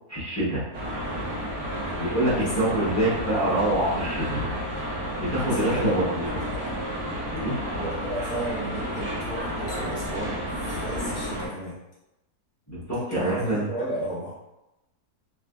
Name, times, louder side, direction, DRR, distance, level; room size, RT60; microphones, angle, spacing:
voice 1, 0.1-0.6 2.0-4.4 5.2-6.3 7.3-7.5 12.7-13.6, right 1 dB, 20° left, -9 dB, 0.5 m, -25 dB
sound 1, 0.7-11.5, equal, 85° right, 1.5 m, -31 dB
voice 2, 5.4-6.0 6.2-6.8 7.7-11.8 12.9-14.4, right 1 dB, 60° left, -7 dB, 1.0 m, -34 dB
3.2 x 2.4 x 2.2 m, 0.94 s
omnidirectional pair, 1.7 m